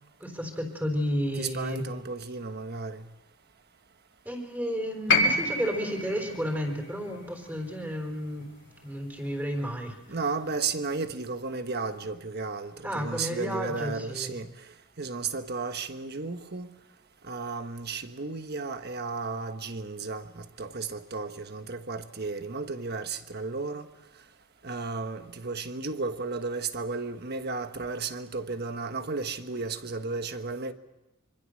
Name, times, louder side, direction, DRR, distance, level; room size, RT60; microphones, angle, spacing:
voice 1, 0.2-1.9 4.3-8.5 8.8-9.9 12.8-14.3, equal, 10° right, 3.8 m, -32 dB
voice 2, 1.3-3.1 10.1-14.5 15.0-16.7 17.3-23.9 24.6-30.7, right 4 dB, 50° right, 1.4 m, -34 dB
sound 1, 5.1-9.3 10.5-10.6, left 2 dB, 60° left, 3.0 m, -29 dB
25.5 x 24.5 x 6.5 m
head